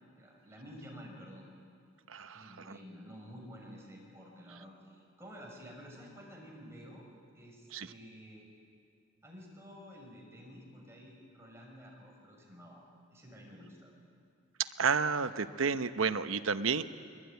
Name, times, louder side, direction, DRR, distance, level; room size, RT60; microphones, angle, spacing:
voice 1, 0.2-1.5 2.3-7.1 7.3-8.5 9.2-12.8 13.1-13.9, equal, 15° right, -1 dB, 5.8 m, -51 dB
voice 2, 2.1-2.5 7.7-7.9 14.8-16.8, right 5 dB, 80° right, 11 dB, 0.9 m, -31 dB
23.5 x 22.5 x 9.4 m, 2.3 s
head